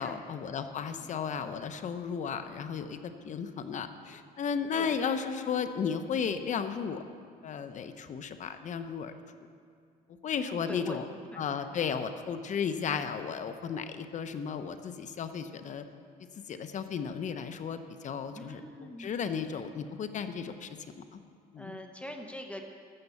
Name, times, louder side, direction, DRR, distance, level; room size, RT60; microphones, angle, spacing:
voice 1, 0.0-7.0 7.4-9.1 10.2-11.1 11.4-15.8 16.5-20.7 21.0-21.2 21.5-21.8, left 6 dB, 45° left, 9 dB, 0.8 m, -34 dB
voice 2, 0.8-1.5 4.7-5.0 10.4-11.0 11.3-11.8 18.3-19.1 21.6-22.6, equal, 5° left, 3 dB, 0.9 m, -44 dB
14.5 x 6.7 x 7.1 m, 2.2 s
cardioid pair, 110°, 17 cm